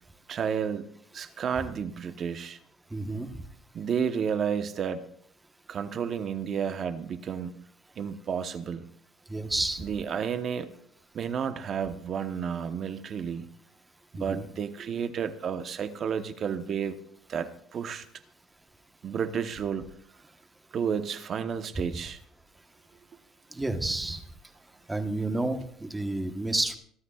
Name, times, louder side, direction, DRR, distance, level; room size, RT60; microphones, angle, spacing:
voice 1, 0.3-2.6 3.7-5.0 5.7-7.6 8.0-8.8 9.8-10.7 11.1-13.5 14.1-17.0 17.3-18.1 19.0-19.8 20.7-22.2, right 7 dB, 40° right, 9 dB, 1.0 m, -31 dB
voice 2, 2.9-3.3 9.3-9.8 14.1-14.4 23.5-24.2 24.9-26.8, right 2 dB, 10° right, 6 dB, 1.2 m, -30 dB
24.0 x 12.5 x 2.4 m, 0.66 s
cardioid pair, 140°, 0 cm